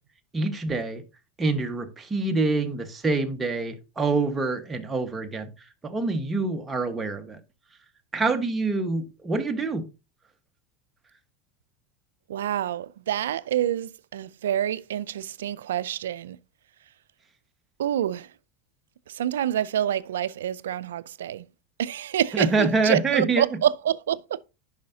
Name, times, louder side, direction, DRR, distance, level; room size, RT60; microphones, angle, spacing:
voice 1, 0.3-1.0 1.4-5.5 5.8-7.4 8.1-9.8 22.3-23.5, right 3 dB, 20° right, 1.3 m, -26 dB
voice 2, 12.3-16.4 17.8-18.3 19.1-21.5 21.8-24.5, right 10 dB, 90° right, 0.4 m, -27 dB
10.0 x 5.6 x 2.7 m
supercardioid pair, 105°, 0 cm